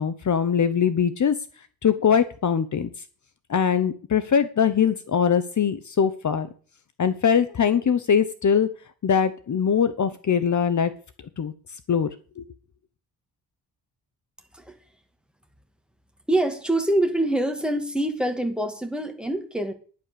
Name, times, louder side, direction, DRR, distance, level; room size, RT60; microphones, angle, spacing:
voice 1, 0.0-1.3 1.8-2.9 3.5-6.5 7.0-8.7 9.0-10.9 11.4-11.5 11.9-12.1 12.4-12.5, left 7 dB, 45° left, 13 dB, 1.0 m, -22 dB
voice 2, 16.3-19.7, right 1 dB, ahead, 5 dB, 2.1 m, -25 dB
10.5 x 10.0 x 6.9 m, 0.41 s
wide cardioid pair, 125°, 39 cm